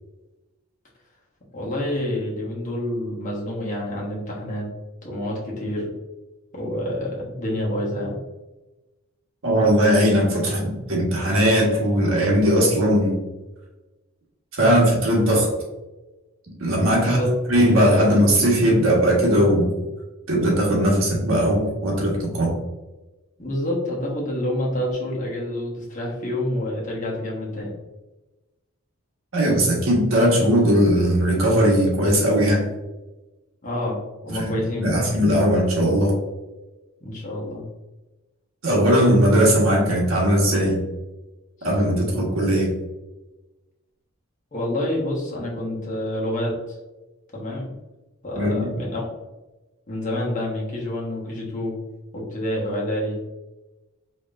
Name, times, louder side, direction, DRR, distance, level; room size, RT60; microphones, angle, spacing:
voice 1, 1.5-4.7 5.0-5.9 6.5-8.2 14.6-14.9 17.0-17.3 23.4-27.7 33.6-35.1 37.0-37.6 44.5-46.8 47.3-47.7 48.2-49.1 49.9-51.8 52.1-53.2, left 1 dB, 35° left, -4 dB, 1.2 m, -28 dB
voice 2, 9.4-13.2 14.5-15.5 16.6-17.2 17.5-19.7 20.3-22.6 29.3-32.7 34.4-34.5 34.8-36.2 38.6-40.8 41.6-42.7 48.3-48.7, equal, 65° right, -2 dB, 1.4 m, -19 dB
5.0 x 3.0 x 2.5 m, 1.1 s
head